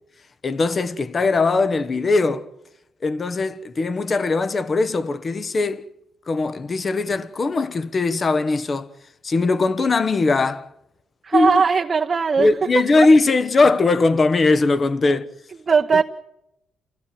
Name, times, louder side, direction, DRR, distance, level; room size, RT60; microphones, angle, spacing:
voice 1, 0.4-2.5 3.0-5.9 6.3-8.9 9.2-10.7 11.3-11.5 12.4-15.3, left 3 dB, 35° left, 1.2 m, -20 dB
voice 2, 11.2-13.1 15.1-15.2 15.6-16.0, right 5 dB, 35° right, 0.9 m, -19 dB
28.0 x 15.5 x 7.5 m
cardioid pair, 90°, 0 cm